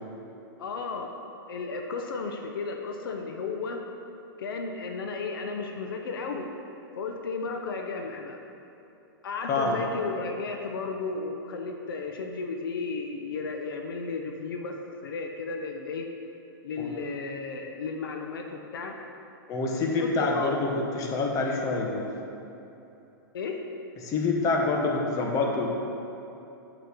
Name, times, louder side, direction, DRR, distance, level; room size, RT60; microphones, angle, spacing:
voice 1, 0.6-1.2 1.5-3.9 4.4-6.5 7.0-8.4 9.2-16.1 16.6-19.0 20.0-20.5 23.3-23.6, left 4 dB, 80° left, 3 dB, 0.9 m, -34 dB
voice 2, 9.5-9.8 16.8-17.0 19.5-22.1 24.0-25.7, left 3 dB, 30° left, 0 dB, 1.3 m, -27 dB
7.2 x 6.8 x 6.1 m, 2.9 s
hypercardioid pair, 140°, 12 cm